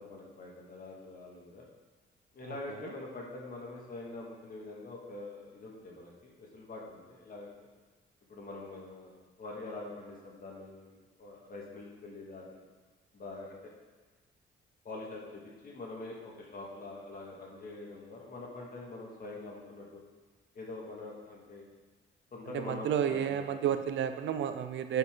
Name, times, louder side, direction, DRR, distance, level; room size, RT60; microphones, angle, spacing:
voice 1, 0.0-1.7 2.3-7.5 8.3-9.1 9.4-12.6 13.1-13.6 14.8-20.0 20.5-21.7 22.3-23.4, left 2 dB, 45° left, -2 dB, 2.2 m, -44 dB
voice 2, 22.5-25.0, right 9 dB, 70° right, 9 dB, 0.6 m, -31 dB
11.0 x 5.7 x 3.9 m, 1.3 s
cardioid pair, 90°, 20 cm